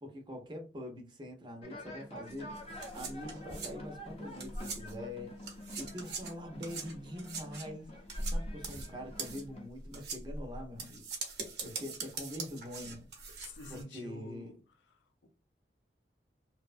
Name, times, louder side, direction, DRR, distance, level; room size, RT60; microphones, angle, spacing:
voice 1, 0.0-2.5 2.9-7.9 8.3-11.1 11.6-13.1 13.7-14.6, left 1 dB, 25° right, 0.5 m, -44 dB
sound 1, 1.6-9.7, left 1 dB, 35° left, 0.6 m, -48 dB
sound 2, 2.3-5.1 5.4-13.8, right 3 dB, 60° right, 0.7 m, -41 dB
voice 2, 13.4-14.5 14.8-15.3, left 2 dB, 80° left, 0.5 m, -49 dB
2.7 x 2.1 x 2.5 m
head